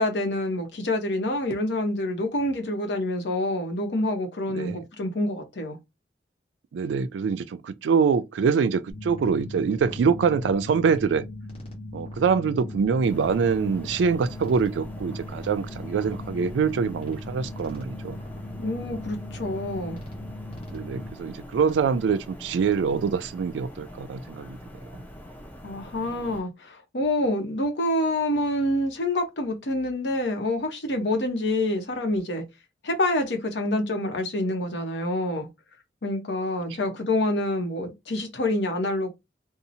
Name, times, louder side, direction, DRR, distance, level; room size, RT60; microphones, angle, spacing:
voice 1, 0.0-5.8 18.6-20.0 25.6-32.4 32.8-35.5 36.0-39.1, left 1 dB, 75° left, 0.8 m, -27 dB
voice 2, 4.5-4.8 6.7-11.3 11.9-18.2 20.7-24.6 24.9-25.0, right 6 dB, 90° right, 0.3 m, -24 dB
sound 1, 8.9-21.1, left 1 dB, 35° left, 1.0 m, -39 dB
sound 2, 13.0-26.4, equal, 10° left, 0.4 m, -44 dB
2.7 x 2.0 x 2.6 m
head